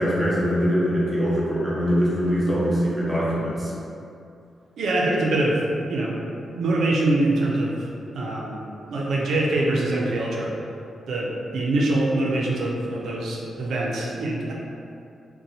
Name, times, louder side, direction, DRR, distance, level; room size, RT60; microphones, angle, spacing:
voice 1, 0.0-3.7, equal, ahead, -8 dB, 0.7 m, -22 dB
voice 2, 4.8-5.6 5.9-6.2 6.5-7.9 8.1-8.6 8.9-10.5 11.1-14.5, right 2 dB, 80° right, -3 dB, 0.5 m, -24 dB
2.7 x 2.2 x 4.1 m, 2.6 s
wide cardioid pair, 155°, 0 cm